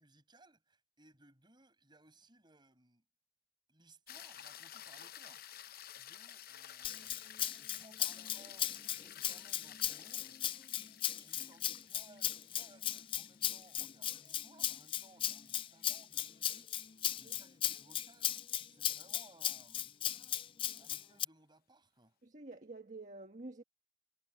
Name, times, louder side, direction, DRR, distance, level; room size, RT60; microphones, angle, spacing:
voice 1, 0.0-3.0 3.7-5.5 5.9-7.2 7.5-10.6 11.2-20.0 20.8-22.2, right 2 dB, 25° right, 6.3 m, -64 dB
sound 1, 4.1-16.5 20.9-21.0, left 11 dB, 55° left, 0.7 m, -53 dB
Rattle (instrument), 6.8-21.2, left 11 dB, 30° left, 0.3 m, -37 dB
voice 2, 22.2-23.6, right 2 dB, 45° right, 1.5 m, -49 dB
head